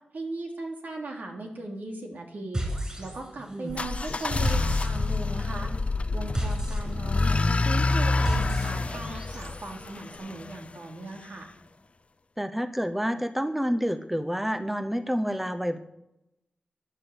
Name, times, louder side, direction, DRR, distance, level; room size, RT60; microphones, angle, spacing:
voice 1, 0.1-5.7 6.1-11.5, right 2 dB, 75° right, 1 dB, 3.2 m, -38 dB
sound 1, 2.5-3.5 3.7-9.7, right 1 dB, 25° right, 7.1 m, -34 dB
sound 2, 3.7-10.6, left 3 dB, 40° left, 0.7 m, -27 dB
voice 2, 12.4-15.8, equal, 5° right, 10 dB, 1.0 m, -28 dB
13.0 x 10.5 x 8.2 m, 0.88 s
wide cardioid pair, 70°, 3 cm